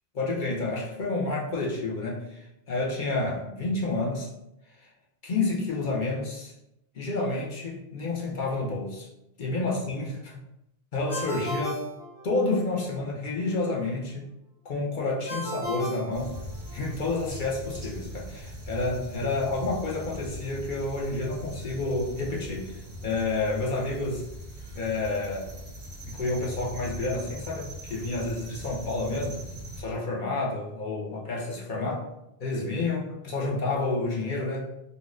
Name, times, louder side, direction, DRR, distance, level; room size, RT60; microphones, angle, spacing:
voice 1, 0.1-4.3 4.8-4.9 5.2-6.5 6.9-9.1 9.4-10.4 10.9-11.8 12.2-14.2 14.6-16.4 16.7-24.2 24.7-25.5 26.1-29.4 29.8-32.1 32.4-34.7, left 2 dB, 55° left, -3 dB, 0.8 m, -29 dB
Ringtone, 11.1-12.8 15.3-16.9, right 1 dB, 80° left, 1.1 m, -36 dB
sound 1, 16.1-29.8, equal, 30° right, 0.6 m, -41 dB
3.8 x 2.6 x 2.4 m, 0.87 s
omnidirectional pair, 1.1 m